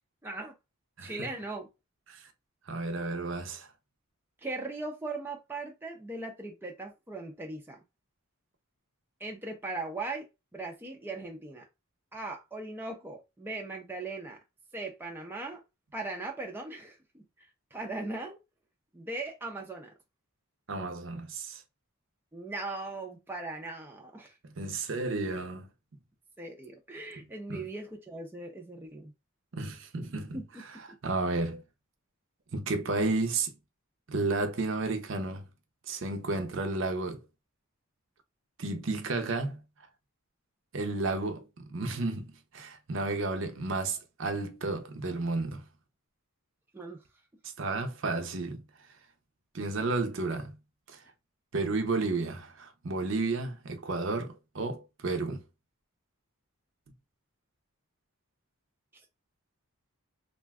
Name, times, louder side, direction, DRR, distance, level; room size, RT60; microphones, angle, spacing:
voice 1, 0.2-0.6 1.0-1.7 4.4-7.8 9.2-10.3 10.5-11.7 12.1-14.4 14.7-15.6 15.9-18.4 18.9-19.9 22.3-24.4 26.4-29.1 30.3-31.0 46.7-47.0 58.9-59.0, right 2 dB, 10° right, 0.4 m, -39 dB
voice 2, 1.0-1.3 2.1-2.3 2.7-3.7 20.7-21.6 24.4-25.7 27.5-27.7 29.5-31.6 32.5-33.5 34.1-35.5 35.9-37.2 38.6-39.6 40.7-45.6 47.6-48.6 49.5-50.5 50.9-51.0 51.5-55.4, right 3 dB, 60° right, 0.6 m, -32 dB
2.5 x 2.3 x 3.4 m
head